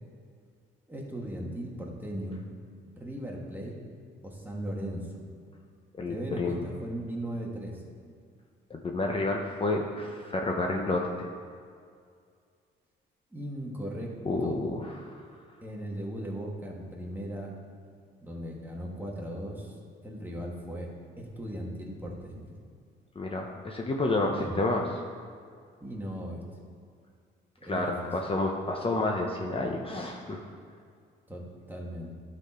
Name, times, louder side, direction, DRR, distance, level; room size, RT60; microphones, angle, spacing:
voice 1, 0.9-2.4 3.0-3.8 4.2-5.2 6.1-7.9 13.3-14.1 14.4-14.6 15.6-17.5 18.2-19.8 20.0-20.9 21.2-22.5 24.3-24.6 25.8-26.4 27.7-28.1 31.3-32.1, equal, 10° right, -2 dB, 1.7 m, -37 dB
voice 2, 6.0-6.7 8.7-11.3 14.2-15.2 23.2-24.8 27.7-30.4, left 2 dB, 30° left, 1 dB, 0.8 m, -30 dB
11.5 x 4.3 x 4.3 m, 2.2 s
cardioid pair, 90°, 20 cm